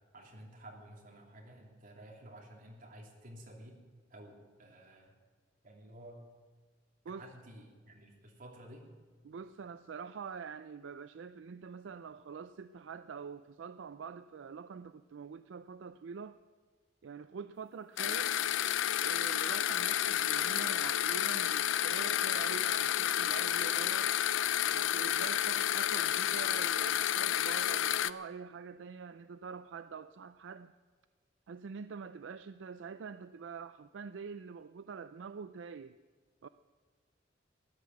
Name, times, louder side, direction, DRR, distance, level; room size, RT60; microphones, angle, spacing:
voice 1, 0.1-3.8 4.1-5.1 5.6-6.2 7.1-8.9, right 1 dB, 50° right, -1 dB, 3.0 m, -52 dB
voice 2, 9.2-16.4 17.0-18.4 19.0-24.2 24.7-30.7 31.5-36.0 36.4-36.5, right 6 dB, 75° right, 12 dB, 0.4 m, -45 dB
sound 1, 18.0-28.1, left 11 dB, 85° left, 0.4 m, -31 dB
15.0 x 10.0 x 8.1 m, 1.4 s
head